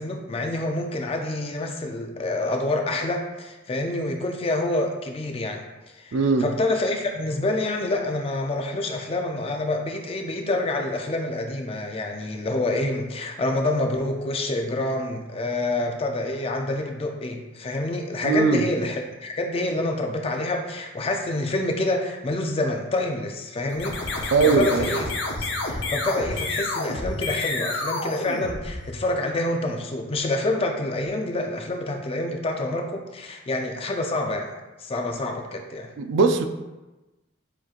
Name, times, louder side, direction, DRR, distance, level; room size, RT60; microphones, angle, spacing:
voice 1, 0.0-25.1 25.4-34.5 34.8-35.9, left 2 dB, 30° left, 0.4 m, -27 dB
voice 2, 6.1-6.5 18.2-18.7 24.3-24.9 36.0-36.4, right 4 dB, 70° right, 0.4 m, -20 dB
sound 1, 23.7-29.2, left 2 dB, 65° left, 0.6 m, -29 dB
6.9 x 3.0 x 2.4 m
head